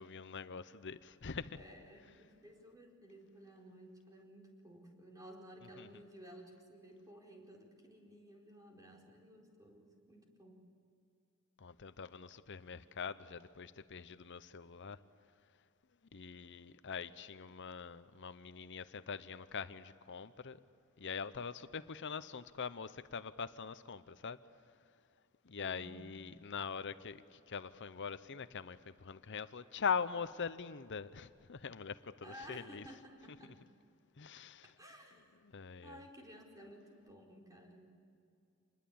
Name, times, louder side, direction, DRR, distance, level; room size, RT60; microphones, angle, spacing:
voice 1, 0.0-1.6 5.8-5.9 11.6-15.0 16.1-20.6 21.0-24.4 25.4-32.8 34.2-34.7 35.4-36.0, left 6 dB, 55° left, 0.8 m, -43 dB
voice 2, 1.5-10.7 25.6-26.0 32.2-33.5 34.8-35.6 35.8-37.9, equal, 15° right, 4.5 m, -55 dB
28.0 x 21.0 x 8.7 m
head